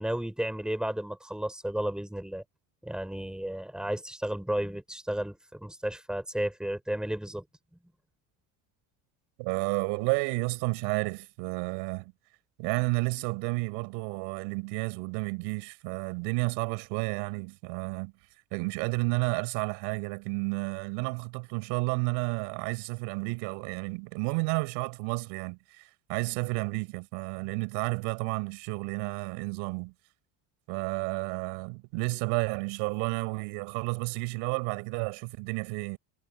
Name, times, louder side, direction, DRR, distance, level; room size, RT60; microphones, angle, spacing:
voice 1, 0.0-2.4 2.8-7.4, right 1 dB, ahead, 5.8 m, -33 dB
voice 2, 9.4-12.1 12.6-18.1 18.5-25.8 26.1-29.9 30.7-36.0, right 33 dB, 85° right, 7.9 m, -31 dB
cardioid pair, 170°, 42 cm